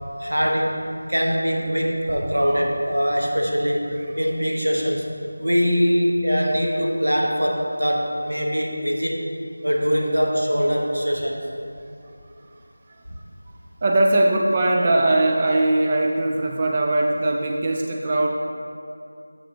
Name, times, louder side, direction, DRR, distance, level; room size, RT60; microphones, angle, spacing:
voice 1, 0.2-5.1 5.4-9.2 9.6-11.4 13.1-13.2, equal, 80° right, 0 dB, 1.0 m, -22 dB
voice 2, 13.8-18.3, right 2 dB, 25° right, 0 dB, 0.3 m, -20 dB
7.3 x 6.6 x 3.6 m, 2.5 s
figure-of-eight pair, 170°, 0 cm